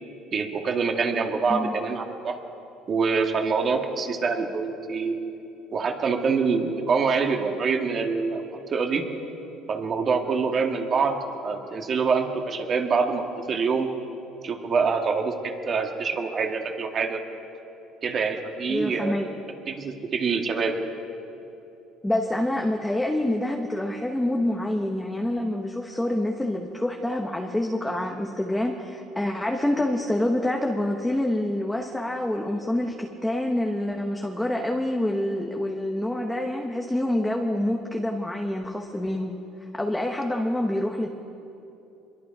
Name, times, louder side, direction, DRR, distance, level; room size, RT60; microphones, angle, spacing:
voice 1, 0.3-2.4 2.9-5.2 5.7-9.0 9.7-11.2 11.4-13.9 14.4-17.2 18.0-19.2 19.7-20.8, right 5 dB, 35° right, 3 dB, 2.0 m, -25 dB
voice 2, 18.7-19.3 22.0-39.4 39.7-41.1, left 1 dB, 5° left, 2 dB, 1.1 m, -27 dB
25.5 x 22.5 x 4.9 m, 2.9 s
cardioid pair, 150°, 0 cm